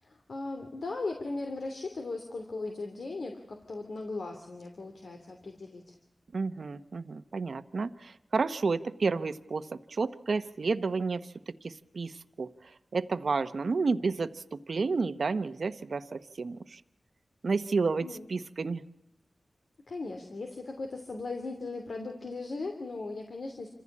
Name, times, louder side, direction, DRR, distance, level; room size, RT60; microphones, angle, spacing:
voice 1, 0.0-5.9 18.0-18.3 19.9-23.7, left 3 dB, 70° left, 4 dB, 2.8 m, -38 dB
voice 2, 6.3-11.3 11.6-16.8 17.4-18.8, right 4 dB, 70° right, 12 dB, 1.0 m, -31 dB
28.0 x 15.5 x 8.6 m, 0.82 s
wide cardioid pair, 85°, 0 cm